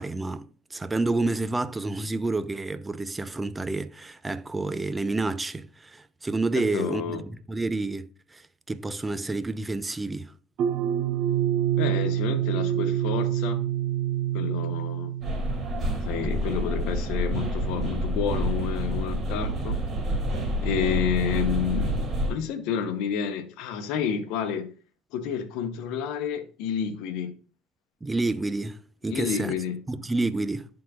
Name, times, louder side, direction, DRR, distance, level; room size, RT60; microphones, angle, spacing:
voice 1, 0.0-10.3 28.0-29.5 29.9-30.7, right 2 dB, 20° right, 0.6 m, -29 dB
voice 2, 6.7-7.2 11.8-13.6 14.3-15.1 16.1-19.8 20.6-24.7 25.1-27.3 29.1-29.8, left 8 dB, 70° left, 0.9 m, -30 dB
sound 1, 10.6-15.8, right 11 dB, 60° right, 0.7 m, -26 dB
sound 2, 15.2-22.3, right 1 dB, 40° right, 2.5 m, -28 dB
11.5 x 3.9 x 2.4 m
hypercardioid pair, 70°, 0 cm